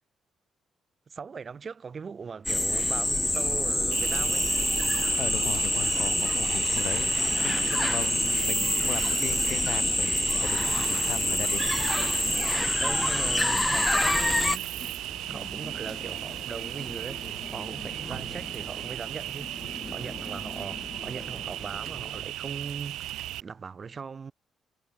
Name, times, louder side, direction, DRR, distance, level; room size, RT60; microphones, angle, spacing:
voice 1, 1.1-4.5 6.1-6.3 7.3-7.5 12.8-14.7 15.3-24.3, right 5 dB, 40° right, 5.4 m, -40 dB
sound 1, 2.5-14.6, left 1 dB, 10° left, 0.5 m, -26 dB
sound 2, 3.3-22.2, left 3 dB, 25° left, 4.8 m, -44 dB
Cricket, 3.9-23.4, right 15 dB, 90° right, 3.8 m, -36 dB
voice 2, 5.2-12.1, left 13 dB, 80° left, 3.9 m, -38 dB
cardioid pair, 90°, 0 cm